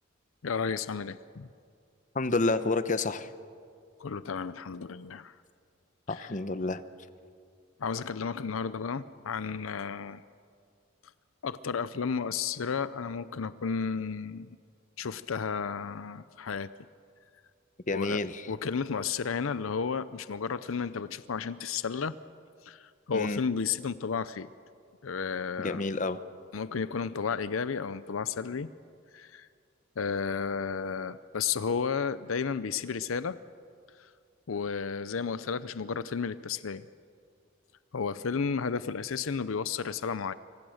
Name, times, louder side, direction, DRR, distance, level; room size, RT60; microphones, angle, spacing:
voice 1, 0.4-1.5 4.0-5.3 6.1-6.3 7.8-10.2 11.4-14.5 15.0-16.7 17.9-18.2 18.5-22.1 22.6-24.5 25.0-25.8 26.5-28.7 29.1-29.5 30.0-33.4 34.0-34.1 34.5-36.8 37.9-40.3, left 5 dB, 80° left, 15 dB, 0.6 m, -32 dB
voice 2, 2.1-3.3 6.1-6.8 17.9-18.5 23.1-23.4 25.6-26.2, left 3 dB, 40° left, 12 dB, 0.9 m, -29 dB
25.5 x 24.5 x 6.5 m, 2.2 s
head